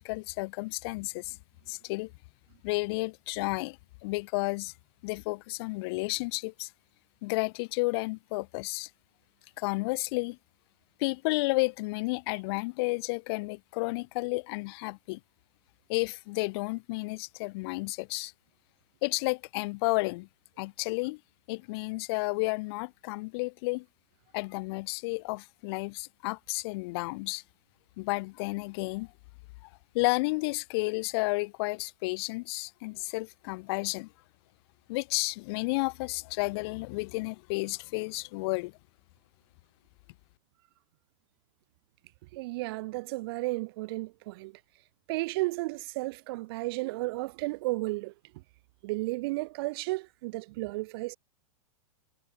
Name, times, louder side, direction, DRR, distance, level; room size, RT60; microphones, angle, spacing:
voice 1, 0.0-1.4 1.7-2.1 2.6-4.7 5.0-6.7 7.2-8.9 9.6-10.4 11.0-15.2 15.9-18.3 19.0-20.3 20.6-21.2 21.5-23.8 24.3-27.4 28.0-29.1 29.9-34.1 34.9-38.7, left 25 dB, 50° left, 1.7 m, -32 dB
voice 2, 42.3-44.5 45.1-48.1 48.8-51.2, right 22 dB, 45° right, 0.4 m, -33 dB
hypercardioid pair, 140°, 17 cm